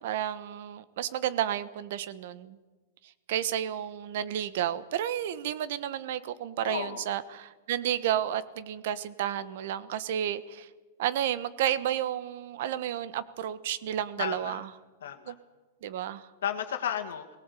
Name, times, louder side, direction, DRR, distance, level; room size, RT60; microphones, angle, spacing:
voice 1, 0.0-2.6 3.3-10.7 11.0-14.6 15.3-15.4 15.8-16.2, right 11 dB, 60° right, 15 dB, 1.2 m, -31 dB
voice 2, 6.6-7.1 14.2-14.7 15.0-15.3 16.4-17.4, left 9 dB, 80° left, 5 dB, 1.8 m, -33 dB
18.5 x 18.0 x 8.4 m, 1.3 s
hypercardioid pair, 145°, 0 cm